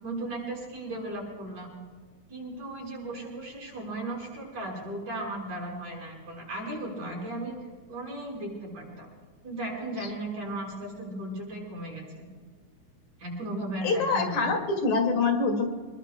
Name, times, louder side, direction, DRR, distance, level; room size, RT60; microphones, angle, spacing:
voice 1, 0.0-1.7 2.3-7.6 7.9-9.1 9.4-12.3 13.2-14.5, right 1 dB, 75° right, -2 dB, 7.1 m, -36 dB
voice 2, 13.8-15.7, left 4 dB, 70° left, 3 dB, 3.6 m, -25 dB
25.5 x 22.0 x 2.3 m, 1.5 s
omnidirectional pair, 3.4 m